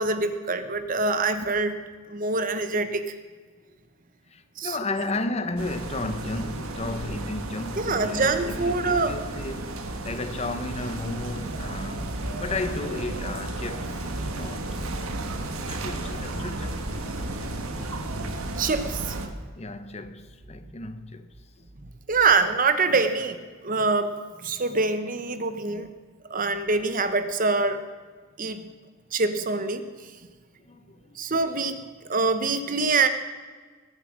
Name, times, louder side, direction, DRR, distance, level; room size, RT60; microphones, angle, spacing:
voice 1, 0.0-1.8 2.1-3.1 4.6-4.8 7.8-9.2 15.3-15.4 15.7-15.8 18.6-19.3 22.1-23.4 23.6-24.1 24.4-25.9 26.3-27.8 28.4-28.7 29.1-30.1 31.2-33.1, right 3 dB, 40° right, 0.9 m, -25 dB
voice 2, 4.3-9.8 10.0-14.7 15.4-17.1 19.6-21.4 30.6-31.2, left 2 dB, 30° left, 0.7 m, -34 dB
sound 1, 5.6-19.3, right 2 dB, 85° right, 1.5 m, -33 dB
20.0 x 7.9 x 6.2 m
head